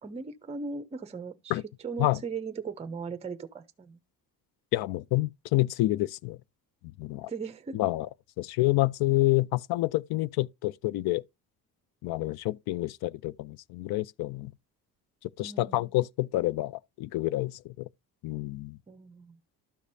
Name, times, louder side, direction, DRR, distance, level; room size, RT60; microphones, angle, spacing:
voice 1, 0.0-4.0 7.2-7.8 15.4-15.9 18.9-19.4, right 5 dB, 15° right, 0.5 m, -38 dB
voice 2, 4.7-6.4 7.0-7.3 7.7-8.1 8.4-11.2 12.0-14.5 15.4-17.9 18.2-18.8, left 18 dB, 85° left, 0.5 m, -28 dB
12.5 x 5.1 x 2.7 m
cardioid pair, 140°, 36 cm